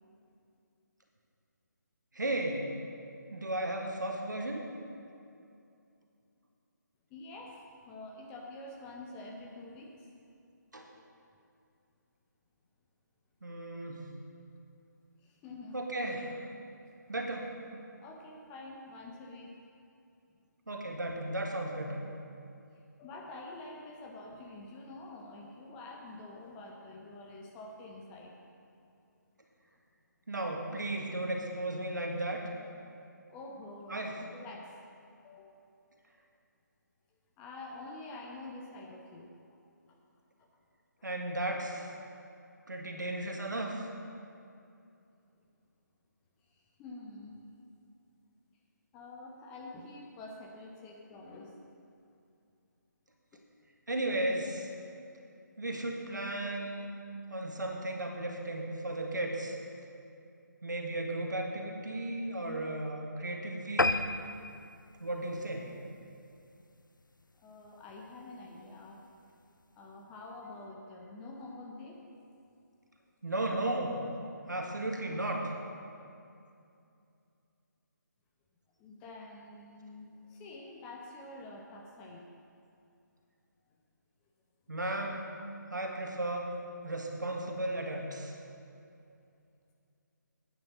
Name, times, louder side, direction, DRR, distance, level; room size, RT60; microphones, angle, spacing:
voice 1, 2.1-2.6 3.3-4.6 10.7-10.9 13.4-14.0 15.7-16.4 17.1-17.5 20.7-22.0 30.3-32.4 33.9-34.2 41.0-41.9 42.7-43.8 53.9-54.7 55.6-56.9 57.3-59.6 60.6-64.1 65.0-65.7 73.2-74.0 74.5-75.5 84.7-85.3 85.7-86.5 86.8-88.3, right 1 dB, 70° right, 1 dB, 1.7 m, -35 dB
voice 2, 7.1-10.1 15.2-15.8 18.0-19.5 23.0-28.4 33.3-34.0 34.3-34.7 35.2-35.6 37.4-39.3 40.4-40.5 46.5-47.4 48.9-51.6 53.3-53.4 67.4-69.0 69.8-72.0 78.8-82.2, left 2 dB, 10° left, 0 dB, 0.6 m, -47 dB
sound 1, 63.8-66.5 67.0-67.2 67.6-67.7 68.0-68.1 68.4-68.5, left 2 dB, 85° left, 0.4 m, -33 dB
9.0 x 7.6 x 6.5 m, 2.5 s
figure-of-eight pair, 150°, 10 cm